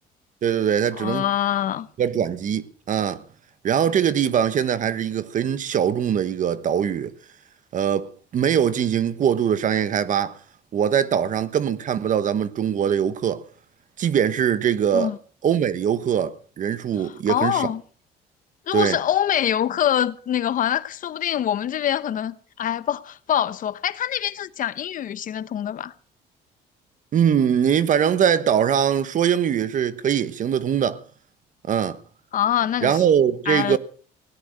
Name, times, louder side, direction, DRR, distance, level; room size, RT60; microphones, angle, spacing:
voice 1, 0.4-1.2 2.0-3.2 3.6-7.1 7.7-10.4 10.7-13.4 14.0-15.1 15.4-17.7 18.7-19.0 27.1-31.0 31.7-32.0 32.8-33.8, right 8 dB, 50° right, 1.2 m, -22 dB
voice 2, 1.0-1.9 14.9-15.2 17.0-17.8 18.7-25.9 32.3-33.0 33.5-33.8, left 10 dB, 50° left, 0.9 m, -24 dB
17.5 x 11.5 x 6.5 m
cardioid pair, 110°, 17 cm